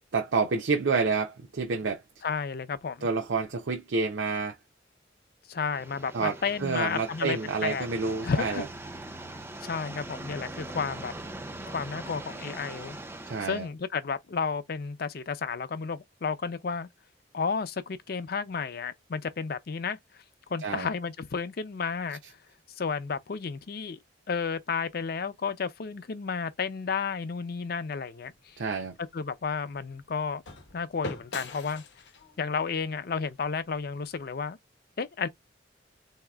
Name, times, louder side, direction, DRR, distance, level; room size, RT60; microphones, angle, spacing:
voice 1, 0.1-2.0 3.0-4.6 6.1-6.3 6.6-8.6 13.3-13.7 20.6-20.9 28.6-28.9, right 4 dB, 75° right, 0.6 m, -28 dB
voice 2, 2.2-3.1 5.5-7.9 8.2-8.6 9.6-11.1 11.7-13.0 13.4-16.9 17.3-20.0 20.5-22.2 22.8-24.0 24.3-28.6 29.0-30.4 30.7-31.8 32.4-34.6 35.0-35.3, left 5 dB, 55° left, 0.5 m, -32 dB
sound 1, 5.6-13.7, right 2 dB, 10° right, 0.5 m, -42 dB
sound 2, 28.2-34.4, left 3 dB, 70° left, 0.8 m, -44 dB
4.0 x 2.8 x 2.3 m
head